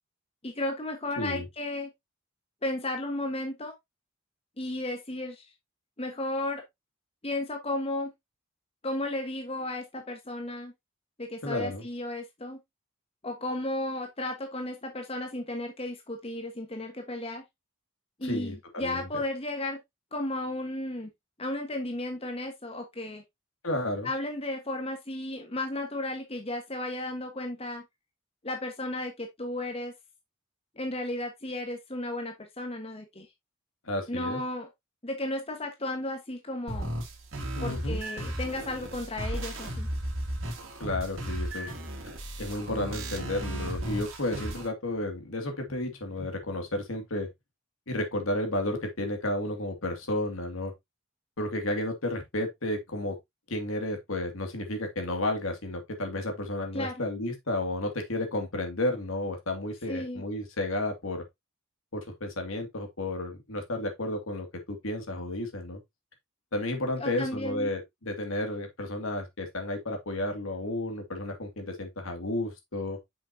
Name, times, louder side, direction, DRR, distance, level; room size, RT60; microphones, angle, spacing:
voice 1, 0.4-1.9 2.6-3.7 4.6-5.5 6.0-6.6 7.2-8.1 8.8-10.7 11.2-12.6 13.2-17.4 18.2-19.8 20.1-21.1 21.4-23.2 24.0-27.8 28.4-29.9 30.7-33.3 34.1-34.7 35.0-36.9 37.6-39.9 56.7-57.0 59.9-60.2 66.9-67.7, left 1 dB, 25° left, 1.3 m, -34 dB
voice 2, 11.4-11.9 18.3-19.1 23.6-24.1 33.8-34.4 37.6-38.0 40.8-41.7 42.4-47.3 47.9-50.7 51.4-53.2 53.5-61.2 61.9-65.8 66.5-73.0, left 1 dB, 75° left, 2.2 m, -32 dB
sound 1, 36.7-44.7, right 1 dB, 65° right, 2.2 m, -35 dB
7.1 x 6.0 x 2.7 m
head